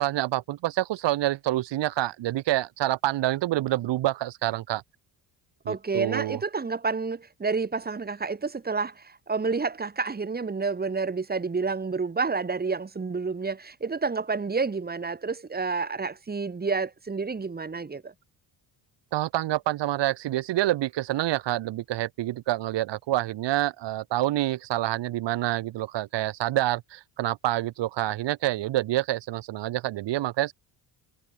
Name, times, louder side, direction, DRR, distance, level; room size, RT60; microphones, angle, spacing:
voice 1, 0.0-4.8 5.6-6.4 19.1-30.5, right 15 dB, 75° right, 1.5 m, -27 dB
voice 2, 5.7-18.1, right 4 dB, 20° right, 1.7 m, -29 dB
cardioid pair, 100°, 44 cm